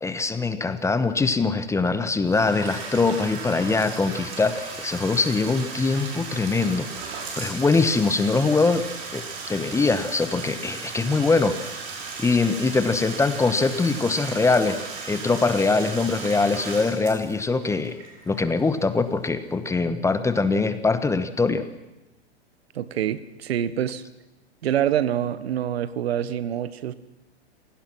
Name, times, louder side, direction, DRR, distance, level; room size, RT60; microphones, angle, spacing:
voice 1, 0.0-6.9 7.4-8.8 9.1-11.8 12.2-14.8 15.1-18.0 18.3-21.6, left 3 dB, 10° left, 11 dB, 1.1 m, -23 dB
Bathtub (filling or washing), 2.2-19.0, right 4 dB, 40° right, 5.9 m, -36 dB
voice 2, 22.7-24.0 24.6-26.9, right 10 dB, 70° right, 15 dB, 1.3 m, -26 dB
27.0 x 17.5 x 6.2 m, 1.0 s
hypercardioid pair, 115°, 32 cm